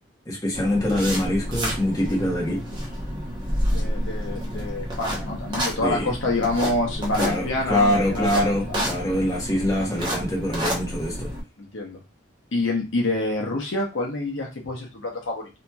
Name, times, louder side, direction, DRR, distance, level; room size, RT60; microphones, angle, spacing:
voice 1, 0.3-2.6 5.8-6.1 7.2-11.3, equal, 20° left, -4 dB, 1.0 m, -24 dB
sound 1, 0.5-11.4, equal, 25° right, 0.9 m, -29 dB
voice 2, 3.7-8.2 8.7-8.8 11.6-12.0 12.5-15.5, left 2 dB, 75° left, 0 dB, 0.8 m, -27 dB
2.8 x 2.7 x 2.3 m, 0.27 s
head